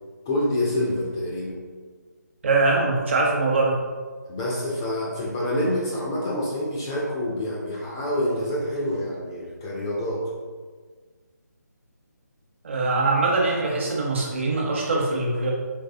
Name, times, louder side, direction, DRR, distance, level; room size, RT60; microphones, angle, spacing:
voice 1, 0.3-1.6 4.3-10.3, left 1 dB, 15° left, -5 dB, 0.3 m, -27 dB
voice 2, 2.4-3.8 12.6-15.5, right 3 dB, 40° right, -2 dB, 0.8 m, -22 dB
4.1 x 3.1 x 2.5 m, 1.5 s
figure-of-eight pair, 155°, 10 cm